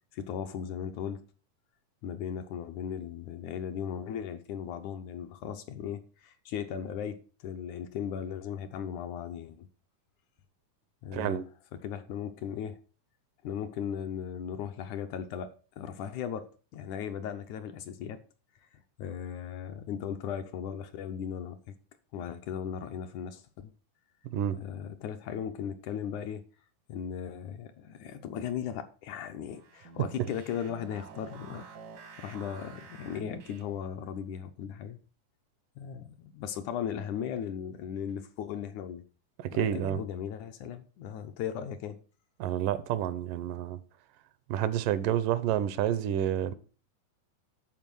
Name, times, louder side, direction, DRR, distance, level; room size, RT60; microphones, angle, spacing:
voice 1, 0.1-1.2 2.0-9.7 11.0-11.4 11.8-12.8 13.4-18.2 19.0-21.7 22.1-23.7 24.5-26.4 26.9-31.7 32.2-35.0 35.8-39.0 39.5-42.0, left 8 dB, 75° left, 2.0 m, -37 dB
voice 2, 11.1-11.5 24.3-24.6 39.4-40.0 42.4-43.8 44.5-46.5, right 11 dB, 80° right, 2.3 m, -29 dB
sound 1, 29.5-34.0, right 4 dB, 65° right, 1.1 m, -49 dB
11.0 x 4.6 x 6.1 m
omnidirectional pair, 3.8 m